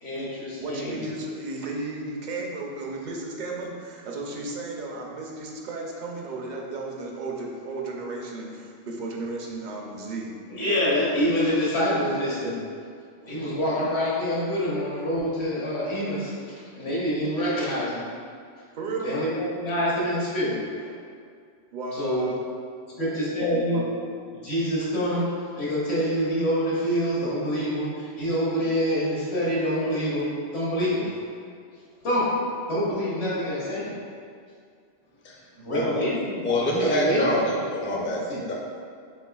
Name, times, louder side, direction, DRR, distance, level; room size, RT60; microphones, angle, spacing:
voice 1, 0.0-1.0 10.5-12.6 13.2-18.0 19.0-20.6 21.9-22.3 22.8-23.8 24.4-25.3 25.6-31.1 32.0-32.4 32.7-34.0 35.6-36.4 36.8-37.4 37.8-38.0 38.3-38.4, equal, 85° left, -7 dB, 1.4 m, -26 dB
voice 2, 0.6-10.3 18.8-19.1 21.7-22.4 22.8-23.9 35.7-36.1, right 3 dB, 55° right, -1 dB, 0.6 m, -34 dB
voice 3, 36.4-38.5, left 1 dB, 20° left, -3 dB, 0.3 m, -25 dB
5.5 x 3.2 x 2.3 m, 2.2 s
omnidirectional pair, 1.1 m